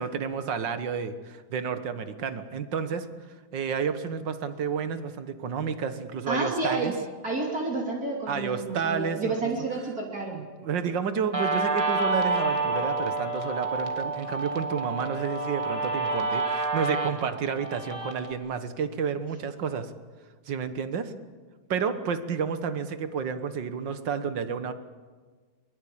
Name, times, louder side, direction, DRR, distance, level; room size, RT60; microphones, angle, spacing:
voice 1, 0.0-3.1 3.5-6.9 8.3-9.5 10.3-19.9 20.5-21.1 21.7-24.7, right 6 dB, 70° right, 10 dB, 2.0 m, -30 dB
voice 2, 6.3-6.9 7.2-10.4, right 3 dB, 50° right, -1 dB, 3.6 m, -30 dB
Guitar, 11.3-18.3, right 3 dB, 15° right, 2.0 m, -29 dB
23.0 x 21.5 x 8.7 m, 1.5 s
omnidirectional pair, 2.1 m